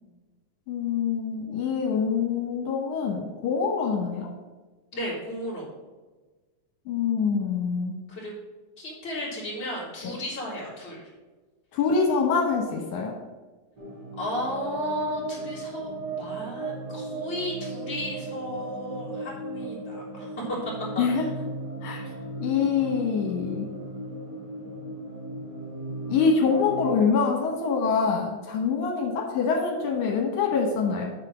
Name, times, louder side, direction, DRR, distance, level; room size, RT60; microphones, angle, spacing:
voice 1, 0.7-4.3 6.9-8.0 10.0-10.1 11.7-13.1 21.0-21.2 21.8-22.1 22.4-23.7 26.1-31.1, left 5 dB, 80° left, 1 dB, 2.6 m, -25 dB
voice 2, 4.9-5.7 8.1-8.3 8.8-11.0 14.2-21.2, left 1 dB, 20° left, -6 dB, 3.2 m, -34 dB
sound 1, 13.8-27.0, right 2 dB, 40° right, 1.8 m, -36 dB
8.5 x 4.8 x 6.1 m, 1.3 s
omnidirectional pair, 3.4 m